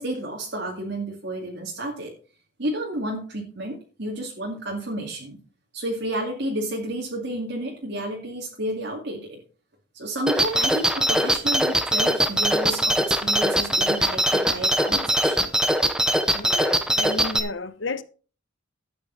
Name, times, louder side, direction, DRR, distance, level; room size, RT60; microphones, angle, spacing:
voice 1, 0.0-2.1 2.6-5.4 5.7-9.4 9.9-15.5, right 1 dB, 55° right, 2.3 m, -31 dB
sound 1, 10.3-17.4, right 1 dB, 5° right, 0.7 m, -21 dB
voice 2, 16.3-18.0, left 3 dB, 65° left, 0.9 m, -32 dB
12.5 x 8.6 x 3.9 m
head